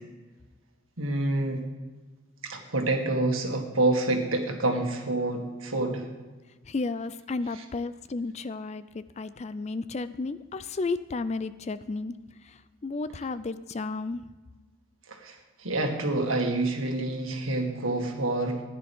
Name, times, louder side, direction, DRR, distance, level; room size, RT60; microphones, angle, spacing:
voice 1, 1.0-1.6 2.4-6.1 15.1-18.6, right 2 dB, 85° right, 2 dB, 1.9 m, -27 dB
voice 2, 6.7-12.2 12.8-14.2, left 3 dB, 35° left, 14 dB, 0.4 m, -33 dB
15.5 x 10.5 x 3.6 m, 1.3 s
head